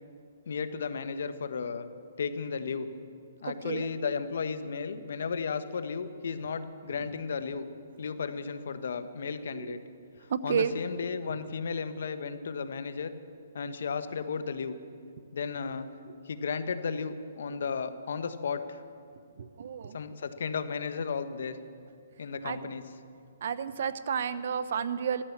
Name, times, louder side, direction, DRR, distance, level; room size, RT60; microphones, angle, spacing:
voice 1, 0.5-1.9 2.2-2.9 3.4-7.7 8.0-9.8 10.4-13.1 13.5-14.8 15.3-15.9 16.2-18.8 19.9-21.6 22.2-22.8, left 5 dB, 70° left, 10 dB, 1.1 m, -34 dB
voice 2, 3.4-3.9 9.5-9.8 10.3-10.7 19.4-20.0 22.4-22.7 23.4-25.2, right 7 dB, 60° right, 12 dB, 0.8 m, -31 dB
14.5 x 13.0 x 7.2 m, 2.3 s
hypercardioid pair, 155°, 0 cm